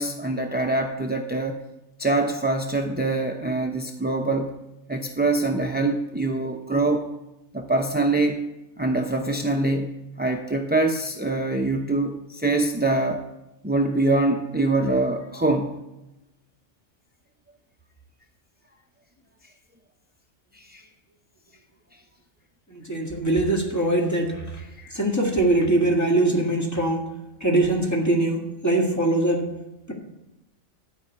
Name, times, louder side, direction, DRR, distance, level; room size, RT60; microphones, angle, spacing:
voice 1, 0.0-1.6 2.0-4.6 4.9-7.1 7.5-8.5 8.8-13.2 13.6-15.8 20.5-20.8 24.8-24.9, right 2 dB, 15° right, 3 dB, 0.4 m, -24 dB
voice 2, 22.7-24.4 24.9-27.1 27.4-29.5 29.9-30.0, right 2 dB, 15° left, -1 dB, 1.9 m, -22 dB
12.5 x 5.1 x 8.3 m, 0.94 s
omnidirectional pair, 1.2 m